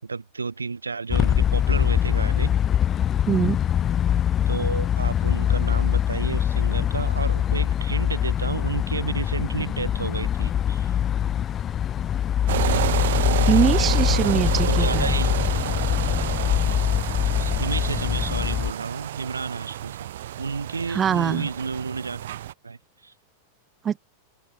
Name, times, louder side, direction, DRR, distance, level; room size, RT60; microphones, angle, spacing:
voice 1, 0.0-2.5 4.5-11.0 14.1-15.3 17.2-20.1 20.4-22.2 22.6-23.1, right 4 dB, 75° right, 5.5 m, -31 dB
sound 1, 1.1-18.7, left 10 dB, 25° left, 0.3 m, -23 dB
voice 2, 3.3-3.6 13.4-15.2 20.9-21.5 23.8-24.0, right 8 dB, 25° right, 2.9 m, -23 dB
sound 2, 12.5-22.5, right 13 dB, 60° right, 0.7 m, -29 dB
open air
figure-of-eight pair, 90°, 0 cm